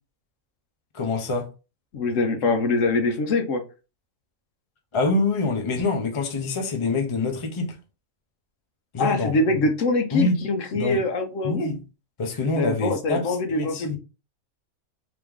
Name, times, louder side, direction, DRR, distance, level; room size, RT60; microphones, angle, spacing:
voice 1, 0.9-1.5 4.9-7.8 8.9-9.3 10.1-10.4 10.7-11.0 11.4-11.8 12.2-14.0, left 3 dB, 30° left, 0.6 m, -25 dB
voice 2, 1.9-3.6 9.0-11.7 12.6-14.0, left 2 dB, 65° left, 1.0 m, -24 dB
3.3 x 3.0 x 3.6 m
omnidirectional pair, 1.5 m